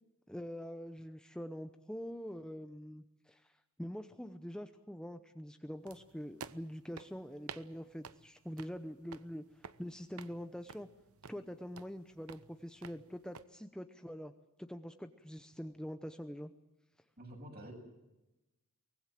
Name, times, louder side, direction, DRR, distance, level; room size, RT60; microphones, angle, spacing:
voice 1, 0.3-10.9 11.3-14.3 14.6-16.5, equal, 5° left, 7 dB, 0.8 m, -45 dB
sound 1, 5.9-13.4, right 6 dB, 90° right, 0.9 m, -53 dB
voice 2, 17.2-17.7, right 1 dB, 45° right, 2 dB, 7.4 m, -48 dB
24.0 x 19.5 x 7.6 m, 0.98 s
head